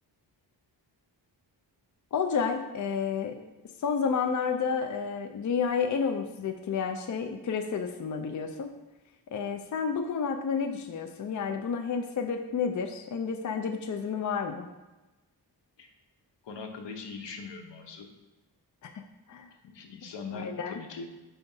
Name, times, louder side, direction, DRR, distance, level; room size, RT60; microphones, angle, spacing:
voice 1, 2.1-3.4 3.8-8.7 9.3-14.7 18.8-19.5 20.3-20.7, left 6 dB, 45° left, 5 dB, 0.4 m, -30 dB
voice 2, 16.4-18.1 19.6-21.1, left 4 dB, 80° left, 4 dB, 0.9 m, -41 dB
5.4 x 3.5 x 5.4 m, 1.1 s
wide cardioid pair, 170°, 43 cm